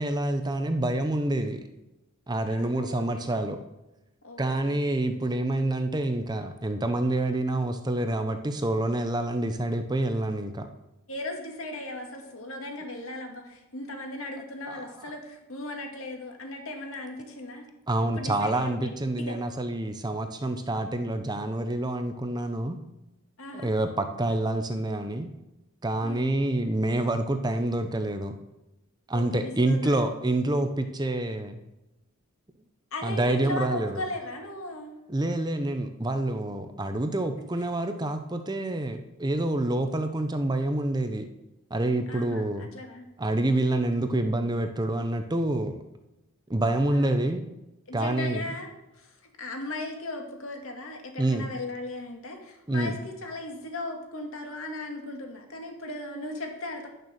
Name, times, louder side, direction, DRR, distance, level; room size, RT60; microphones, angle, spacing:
voice 1, 0.0-1.7 2.3-3.6 4.4-10.7 14.7-14.8 17.9-22.8 23.5-25.3 25.8-28.4 29.1-31.6 33.0-34.0 35.1-41.3 41.7-42.7 43.2-45.8 46.5-47.5 47.9-48.4 51.2-51.5 52.7-53.0, right 1 dB, 20° right, 7 dB, 0.7 m, -27 dB
voice 2, 2.5-3.2 4.2-4.8 11.1-17.6 18.0-18.9 19.2-19.4 23.4-23.7 26.0-26.3 29.1-30.1 32.9-35.0 42.1-43.1 46.9-47.3 47.9-48.7 49.0-56.9, left 2 dB, 70° left, 3 dB, 2.1 m, -37 dB
10.5 x 6.7 x 6.4 m, 0.97 s
head